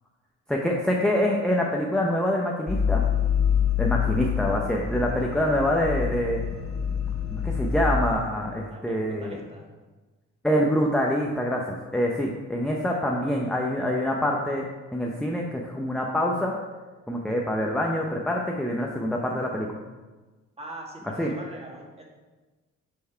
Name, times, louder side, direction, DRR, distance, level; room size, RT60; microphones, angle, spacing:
voice 1, 0.5-3.0 3.8-6.4 7.3-9.4 10.4-14.7 14.9-16.5 17.1-19.7 21.2-21.3, equal, ahead, -1 dB, 0.8 m, -25 dB
sound 1, 2.7-8.1, left 7 dB, 45° left, 2.0 m, -26 dB
voice 2, 8.7-9.7 20.6-22.0, right 1 dB, 20° right, -1 dB, 1.9 m, -42 dB
8.5 x 4.6 x 4.5 m, 1.2 s
cardioid pair, 90°, 30 cm